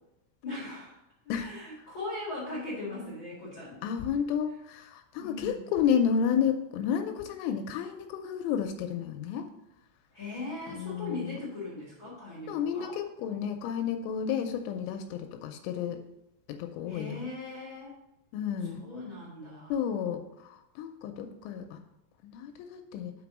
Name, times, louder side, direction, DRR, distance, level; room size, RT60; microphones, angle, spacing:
voice 1, 0.4-1.0 1.4-3.8 5.2-5.6 10.1-13.0 16.9-18.0 18.7-19.7, left 2 dB, 55° left, -7 dB, 1.3 m, -39 dB
voice 2, 3.8-9.5 10.7-11.4 12.5-16.0 16.5-17.3 18.3-18.8 19.7-21.8 22.2-23.1, left 8 dB, 85° left, 6 dB, 3.0 m, -31 dB
6.0 x 5.7 x 6.0 m, 0.86 s
omnidirectional pair, 5.7 m